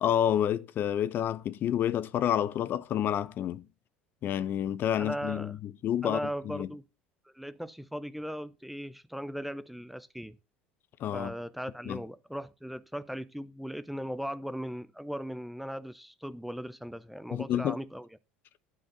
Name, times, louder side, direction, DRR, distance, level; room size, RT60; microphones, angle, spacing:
voice 1, 0.0-3.7 4.2-6.2 6.4-6.7 11.0-11.3 11.9-12.0 17.3-17.8, left 10 dB, 45° left, 0.7 m, -29 dB
voice 2, 5.0-5.5 6.0-6.8 7.3-10.4 11.1-18.1, equal, ahead, 0.6 m, -38 dB
11.5 x 5.0 x 6.6 m
figure-of-eight pair, 65°, 5 cm